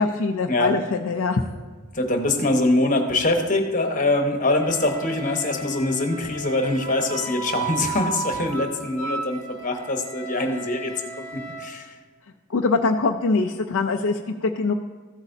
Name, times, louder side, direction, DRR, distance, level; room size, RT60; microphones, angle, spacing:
voice 1, 0.0-1.4 12.5-14.7, left 3 dB, 70° left, 3 dB, 0.5 m, -23 dB
voice 2, 1.9-10.9 11.3-12.0, left 2 dB, 35° left, 4 dB, 1.1 m, -23 dB
Wind instrument woodwind instrument, 4.5-11.6, right 4 dB, 80° right, 2.5 m, -34 dB
14.5 x 8.2 x 2.7 m, 1.5 s
head